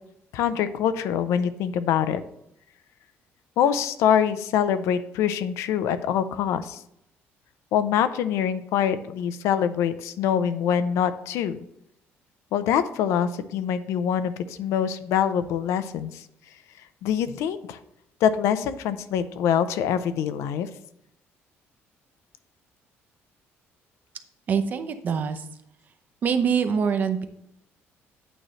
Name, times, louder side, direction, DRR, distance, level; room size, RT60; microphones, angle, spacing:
voice 1, 0.3-2.2 3.6-6.8 7.7-11.6 12.5-16.2 17.0-17.8 18.2-20.7, left 9 dB, 80° left, 12 dB, 0.5 m, -24 dB
voice 2, 24.5-25.4 26.2-27.2, right 6 dB, 40° right, 8 dB, 0.6 m, -24 dB
9.0 x 3.2 x 6.2 m, 0.78 s
cardioid pair, 165°, 5 cm